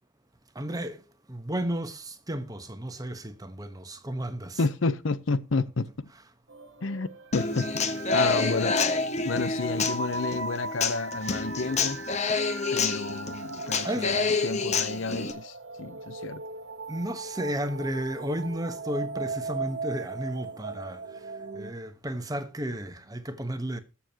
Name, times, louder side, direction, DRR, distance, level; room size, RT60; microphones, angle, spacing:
voice 1, 0.5-1.0 1.3-4.6 13.8-14.2 16.9-21.0 21.5-23.8, equal, 20° right, 1.2 m, -33 dB
voice 2, 4.6-5.9 6.8-7.7 8.1-8.8 9.2-12.0 12.7-16.4, left 3 dB, 90° left, 0.8 m, -30 dB
sound 1, 6.5-21.7, right 3 dB, 70° right, 1.1 m, -38 dB
Human voice / Acoustic guitar, 7.3-15.3, left 4 dB, 35° left, 1.0 m, -28 dB
20.5 x 7.1 x 2.9 m
head